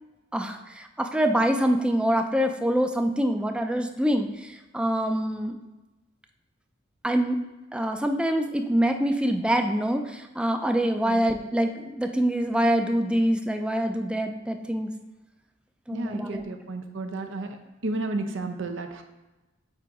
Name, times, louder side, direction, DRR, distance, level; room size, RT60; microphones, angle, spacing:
voice 1, 0.3-5.6 7.0-7.4 7.7-14.9 15.9-16.4, equal, 5° right, 5 dB, 0.4 m, -25 dB
voice 2, 15.9-17.6 17.8-19.0, right 2 dB, 70° right, 5 dB, 0.7 m, -32 dB
7.7 x 2.6 x 4.7 m, 1.1 s
head